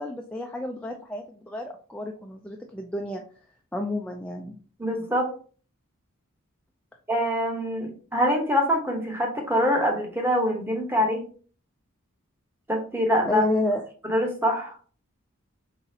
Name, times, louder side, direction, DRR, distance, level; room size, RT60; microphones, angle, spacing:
voice 1, 0.0-3.2 3.7-4.6 13.3-13.8, left 1 dB, 5° left, 1 dB, 0.3 m, -30 dB
voice 2, 4.8-5.3 7.1-11.2 12.7-13.4 14.0-14.7, equal, 10° right, 1 dB, 1.0 m, -24 dB
4.0 x 3.9 x 2.8 m, 0.41 s
head